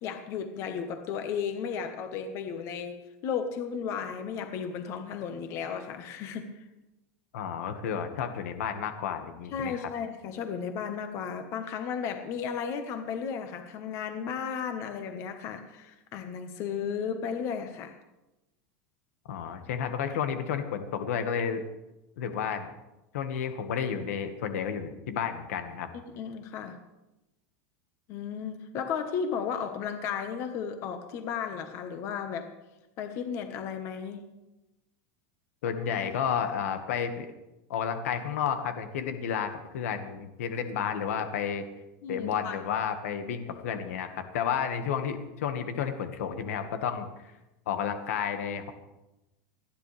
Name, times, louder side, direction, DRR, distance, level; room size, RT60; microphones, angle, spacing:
voice 1, 0.0-2.9 3.2-6.5 9.5-17.9 26.0-26.8 28.1-32.5 33.0-34.2 42.0-42.5, left 7 dB, 40° left, 6 dB, 1.4 m, -34 dB
voice 2, 7.3-9.9 19.3-21.6 22.2-22.7 23.1-25.9 35.6-37.3 37.7-41.6 42.1-47.3 47.7-48.7, left 7 dB, 85° left, 7 dB, 1.7 m, -31 dB
29.5 x 10.5 x 3.4 m, 0.98 s
supercardioid pair, 165°, 8 cm